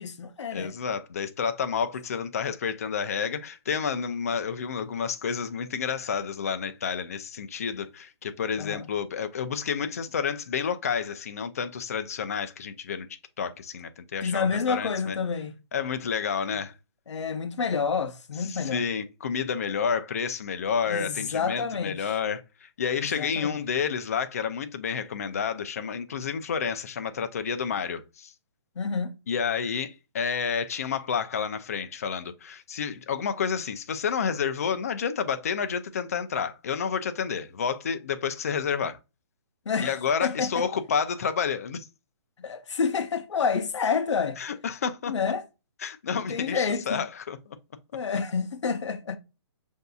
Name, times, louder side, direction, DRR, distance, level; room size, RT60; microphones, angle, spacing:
voice 1, 0.0-0.7 8.6-8.9 14.2-15.5 17.1-18.8 20.9-22.1 23.0-23.5 28.8-29.2 39.7-40.7 42.4-44.4 45.1-45.4 46.1-47.0 47.9-49.2, left 5 dB, 85° left, 0.6 m, -29 dB
voice 2, 0.5-13.1 13.4-15.2 15.7-16.7 18.5-28.3 29.3-39.0 39.8-41.9 44.4-45.1 45.8-47.6, left 6 dB, 35° left, 0.4 m, -30 dB
6.6 x 2.6 x 2.3 m
hypercardioid pair, 175°, 15 cm